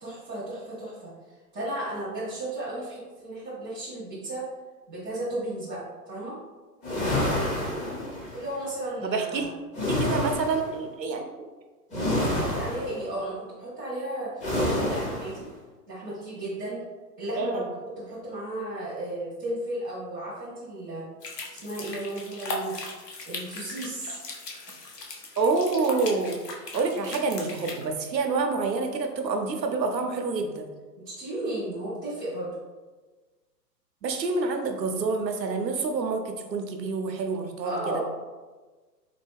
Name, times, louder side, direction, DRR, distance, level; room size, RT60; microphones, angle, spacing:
voice 1, 0.0-1.1 1.5-4.4 4.9-5.8 6.1-6.4 8.3-9.5 12.1-14.4 14.7-15.5 15.9-16.8 17.2-17.6 18.0-21.0 21.5-22.7 23.3-24.2 31.1-32.5 37.6-38.0, right 1 dB, 5° right, -14 dB, 0.4 m, -34 dB
sound 1, 6.8-8.4 9.7-10.7 11.9-13.0 14.4-15.4, left 1 dB, 15° left, 0.8 m, -28 dB
voice 2, 9.0-9.5 9.9-11.5 17.4-17.6 25.4-26.4 26.7-30.7 34.0-37.9, right 4 dB, 85° right, 4 dB, 0.7 m, -27 dB
sound 2, 21.2-27.9, left 2 dB, 75° left, 0.9 m, -38 dB
3.9 x 2.2 x 3.4 m, 1.3 s
figure-of-eight pair, 110°, 49 cm